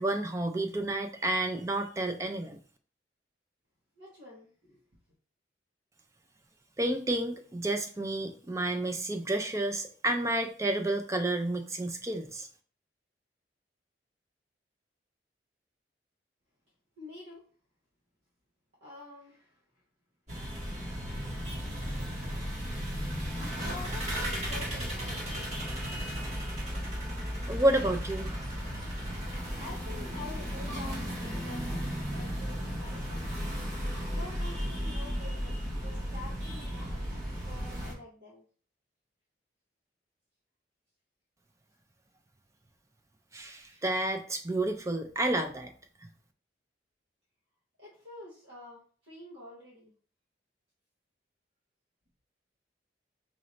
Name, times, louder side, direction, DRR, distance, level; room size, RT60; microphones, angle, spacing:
voice 1, 0.0-2.6 6.8-12.5 27.5-28.5 43.3-45.7, right 1 dB, 15° right, 6 dB, 0.4 m, -30 dB
voice 2, 4.0-4.8 17.0-17.4 18.8-19.6 22.0-22.4 23.6-25.5 29.6-33.2 34.1-38.4 43.7-43.8 47.8-49.9, left 2 dB, 80° right, -5 dB, 1.2 m, -48 dB
sound 1, 20.3-37.9, equal, 40° right, 1.3 m, -35 dB
4.8 x 2.6 x 3.1 m, 0.42 s
head